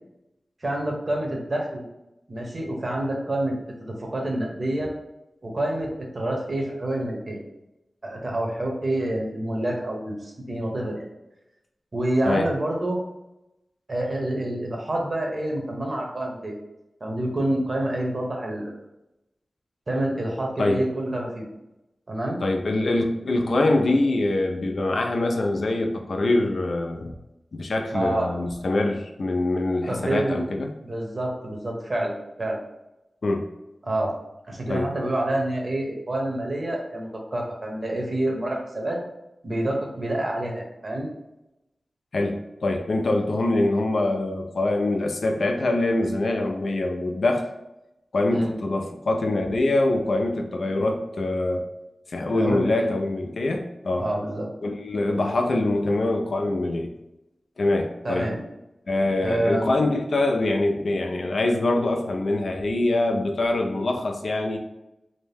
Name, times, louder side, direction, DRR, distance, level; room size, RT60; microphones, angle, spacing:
voice 1, 0.6-1.8 2.3-3.6 3.9-4.9 5.4-7.4 8.0-11.1 11.9-13.0 13.9-16.6 17.0-18.7 19.9-21.5 22.1-22.4 27.9-28.3 29.9-30.4 30.8-32.6 33.8-34.1 34.5-39.0 39.4-41.1 48.3-48.5 52.3-52.9 54.0-54.5 58.0-58.4 59.2-59.8, right 1 dB, 45° right, 0 dB, 0.7 m, -27 dB
voice 2, 22.4-27.1 27.5-30.7 33.2-33.5 34.7-34.9 42.1-47.5 48.1-51.7 52.1-54.1 54.6-56.9 57.6-58.3 58.9-64.6, left 2 dB, 75° left, 3 dB, 0.4 m, -24 dB
2.7 x 2.1 x 3.3 m, 0.92 s
wide cardioid pair, 75°, 0 cm